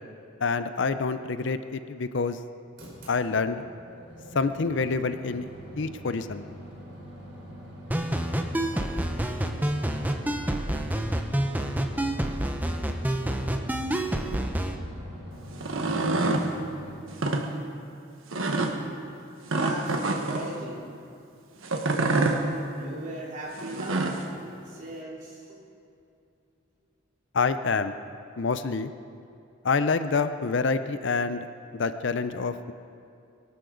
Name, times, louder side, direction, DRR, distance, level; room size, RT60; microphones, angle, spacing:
voice 1, 0.4-2.4 3.1-3.6 4.3-5.5 5.8-6.4 27.3-27.9 28.4-28.9 29.6-31.5 31.7-32.7, left 4 dB, 60° left, 11 dB, 0.5 m, -27 dB
sound 1, 2.8-16.9, equal, 55° right, 4.5 m, -44 dB
sound 2, 7.9-14.7, right 1 dB, 10° right, 0.7 m, -28 dB
sound 3, 15.5-16.5 17.1-17.4 18.3-18.7 19.5-20.5 21.6-22.4 23.6-24.2, right 2 dB, 75° right, 1.3 m, -26 dB
voice 2, 19.5-20.9 21.9-22.5 22.7-25.6, right 1 dB, 40° right, -5 dB, 3.6 m, -38 dB
23.0 x 13.0 x 3.9 m, 2.5 s
head